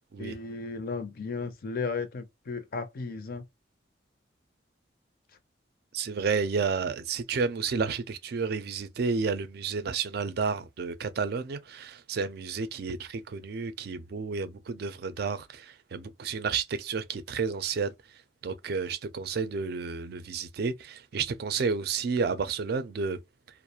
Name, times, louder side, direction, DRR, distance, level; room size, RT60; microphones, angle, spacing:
voice 1, 0.2-3.4, left 4 dB, 50° left, 0.5 m, -35 dB
voice 2, 5.9-17.9 18.4-23.2, right 5 dB, 55° right, 0.4 m, -31 dB
2.3 x 2.0 x 2.8 m
head